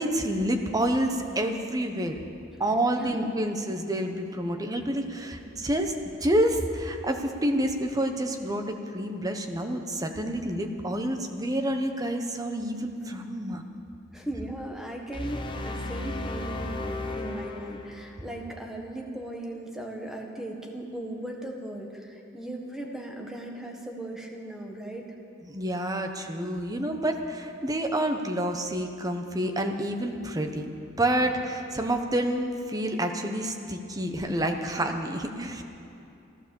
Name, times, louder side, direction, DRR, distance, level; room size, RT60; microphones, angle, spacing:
voice 1, 0.0-2.2 2.6-5.9 6.2-8.6 8.9-13.6 25.4-30.7 31.0-35.6, right 1 dB, 20° right, 4 dB, 1.0 m, -28 dB
voice 2, 3.0-3.4 14.1-25.1 31.2-31.3 34.6-34.7, right 1 dB, ahead, 0 dB, 1.5 m, -38 dB
sound 1, 15.1-18.3, left 2 dB, 25° left, 0.9 m, -35 dB
14.5 x 13.0 x 7.1 m, 2.7 s
head